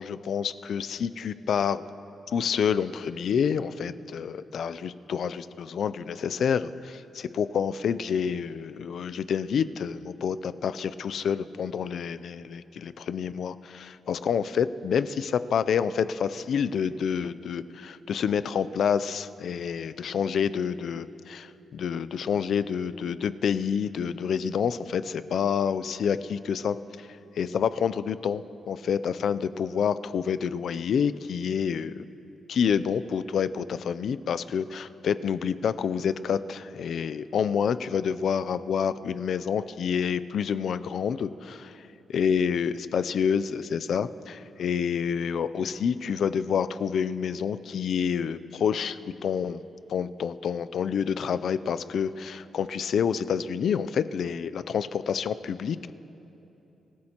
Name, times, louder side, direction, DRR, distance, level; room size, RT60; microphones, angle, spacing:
voice 1, 0.0-1.9 2.3-27.1 27.4-32.0 32.5-41.3 42.1-49.6 49.9-55.9, left 7 dB, 60° left, 14 dB, 0.4 m, -28 dB
25.0 x 14.0 x 2.9 m, 3.0 s
cardioid pair, 140°, 0 cm